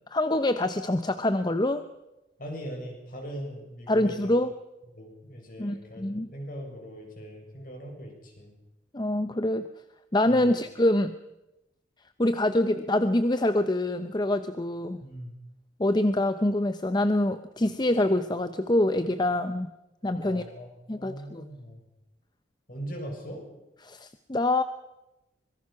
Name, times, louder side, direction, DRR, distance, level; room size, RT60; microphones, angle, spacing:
voice 1, 0.1-1.8 3.9-4.5 5.6-6.3 8.9-9.7 10.1-11.1 12.2-15.0 15.8-19.7 20.0-20.4 20.9-21.4 23.8-24.6, left 1 dB, 25° left, 10 dB, 0.7 m, -25 dB
voice 2, 2.4-4.3 4.9-8.5 10.3-10.5 15.0-15.4 20.2-21.8 22.7-23.4, equal, 50° left, 1 dB, 7.1 m, -40 dB
25.0 x 22.0 x 5.9 m, 0.96 s
head